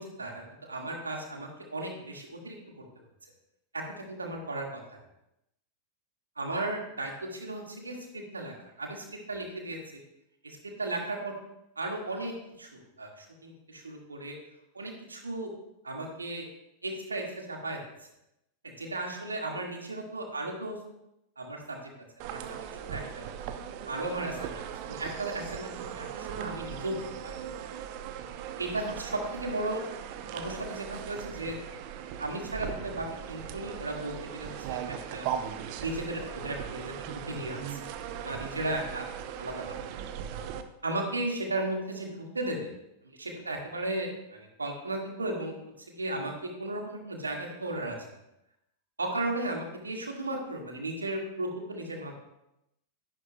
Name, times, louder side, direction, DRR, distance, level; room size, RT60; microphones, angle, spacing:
voice 1, 0.0-2.6 3.7-5.0 6.4-9.8 10.4-11.3 11.7-14.3 14.7-15.5 15.8-16.5 16.8-17.8 18.6-20.8 21.4-21.9 22.2-22.6 22.9-23.3 23.8-27.4 28.6-29.8 30.3-31.5 32.2-35.3 35.8-37.9 38.2-39.0 39.4-39.8 40.8-42.1 42.3-42.7 43.2-45.5 45.9-48.0 49.0-52.1, right 2 dB, 75° right, 2 dB, 1.8 m, -35 dB
sound 1, 22.2-40.6, right 9 dB, 45° right, 0.7 m, -39 dB
12.0 x 11.0 x 2.3 m, 0.86 s
figure-of-eight pair, 90°, 0 cm